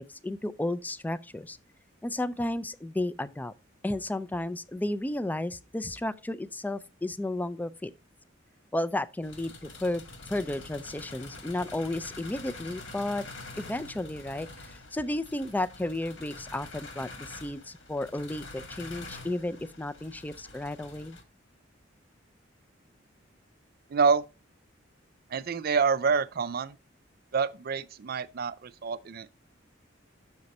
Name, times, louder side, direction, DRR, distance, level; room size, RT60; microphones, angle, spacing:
voice 1, 0.0-1.6 2.0-3.5 3.8-7.9 8.7-10.0 10.3-13.3 13.6-21.2, left 1 dB, 10° left, 0.3 m, -33 dB
sound 1, 9.2-21.2, left 2 dB, 80° left, 1.6 m, -46 dB
voice 2, 23.9-24.2 25.3-26.8 27.3-29.3, right 5 dB, 50° right, 0.4 m, -27 dB
6.5 x 5.9 x 4.1 m
head